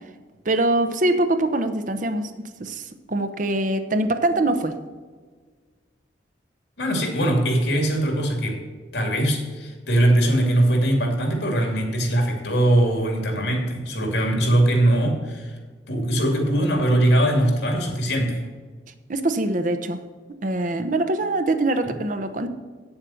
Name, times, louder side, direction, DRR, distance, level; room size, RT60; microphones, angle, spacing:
voice 1, 0.4-4.8 19.1-20.0 20.4-22.5, right 2 dB, 45° right, 9 dB, 0.8 m, -23 dB
voice 2, 6.8-8.6 8.9-15.5 15.9-18.4, right 1 dB, 80° left, 2 dB, 2.5 m, -21 dB
9.0 x 7.3 x 6.4 m, 1.5 s
head